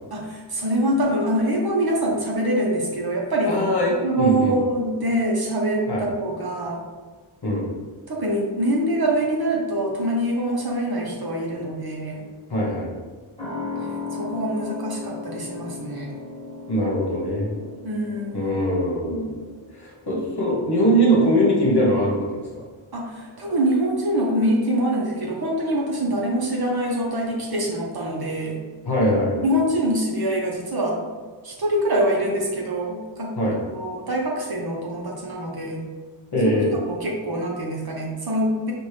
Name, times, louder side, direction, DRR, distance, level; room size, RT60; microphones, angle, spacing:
voice 1, 0.1-3.6 4.0-6.8 8.1-12.2 14.1-16.1 17.8-18.5 22.9-28.6 29.4-31.1 31.4-33.3 33.7-35.8 36.7-38.7, right 1 dB, 50° right, -2 dB, 0.9 m, -24 dB
voice 2, 3.5-4.6 5.9-6.0 7.4-7.6 12.5-12.9 16.7-17.6 18.3-19.4 19.8-22.4 28.9-29.5 33.4-33.6 36.3-36.7, equal, 55° left, -3 dB, 1.1 m, -21 dB
sound 1, 13.4-20.4 20.7-20.8, left 4 dB, 10° left, 1.4 m, -36 dB
5.4 x 2.6 x 3.3 m, 1.4 s
wide cardioid pair, 100°, 48 cm